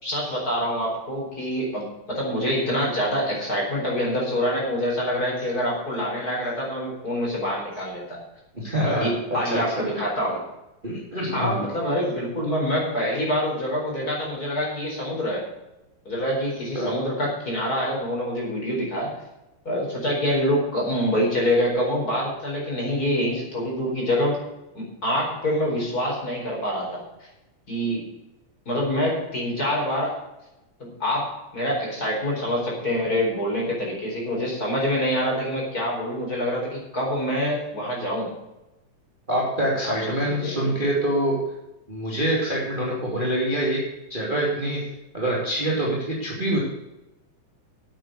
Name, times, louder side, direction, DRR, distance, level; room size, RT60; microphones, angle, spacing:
voice 1, 0.0-8.2 9.0-10.4 11.3-15.5 16.0-19.1 19.6-24.4 24.7-27.3 27.7-28.0 28.7-30.1 30.8-38.3 39.8-40.6, equal, 25° left, -2 dB, 4.6 m, -26 dB
voice 2, 8.5-9.1 9.4-9.8 10.8-11.7 16.7-16.9 39.3-41.4 41.9-43.8 44.1-44.8 45.1-46.6, right 1 dB, 15° right, -3 dB, 2.4 m, -25 dB
9.5 x 8.7 x 7.7 m, 0.95 s
omnidirectional pair, 3.7 m